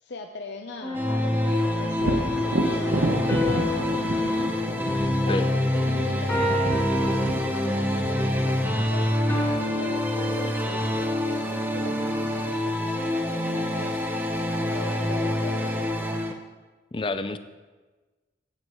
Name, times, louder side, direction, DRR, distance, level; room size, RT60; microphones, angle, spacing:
voice 1, 0.0-9.1 9.7-14.0 14.7-16.3, left 2 dB, 70° left, 5 dB, 0.6 m, -40 dB
sound 1, 0.8-2.3 3.3-5.8 6.3-7.9 9.3-11.0, left 1 dB, 10° left, 2.4 m, -33 dB
sound 2, 0.9-16.3, left 1 dB, 10° right, 0.8 m, -26 dB
Thunder, 2.0-9.7 13.3-13.4 13.9-14.8, right 1 dB, 60° right, 0.9 m, -31 dB
voice 2, 16.9-17.4, left 2 dB, 25° left, 11 dB, 0.5 m, -28 dB
15.5 x 9.4 x 3.1 m, 1.3 s
head